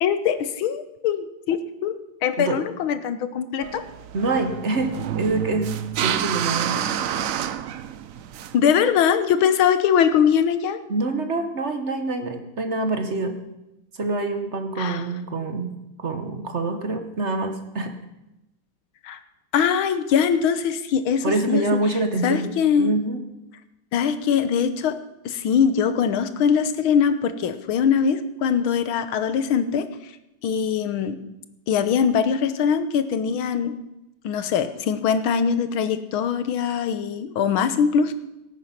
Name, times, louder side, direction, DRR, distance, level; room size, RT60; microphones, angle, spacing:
voice 1, 0.0-3.9 8.5-10.8 14.8-15.1 19.0-19.2 19.5-21.6 22.2-22.9 23.9-25.0 25.3-30.1 30.4-31.2 31.7-33.8 34.2-38.1, left 7 dB, 80° left, 11 dB, 1.7 m, -22 dB
sound 1, 3.6-8.6, right 10 dB, 90° right, 0.7 m, -28 dB
voice 2, 4.1-6.8 10.9-13.4 14.0-15.7 16.0-17.9 21.2-22.5 22.8-23.2, right 2 dB, 40° right, 7 dB, 1.1 m, -26 dB
17.5 x 9.2 x 5.8 m, 0.93 s
omnidirectional pair, 2.3 m